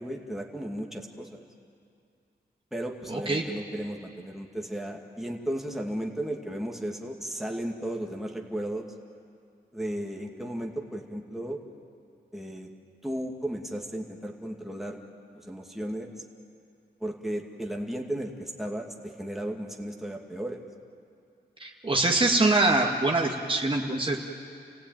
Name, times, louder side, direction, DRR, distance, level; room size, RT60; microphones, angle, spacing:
voice 1, 0.0-1.4 2.7-8.9 9.7-11.6 12.3-12.7 13.0-15.0 15.4-16.1 17.0-20.6, right 1 dB, ahead, 0 dB, 2.4 m, -35 dB
voice 2, 3.1-3.4 21.6-24.2, right 2 dB, 30° right, 0 dB, 2.0 m, -24 dB
29.5 x 17.0 x 9.2 m, 2.4 s
cardioid pair, 90°, 18 cm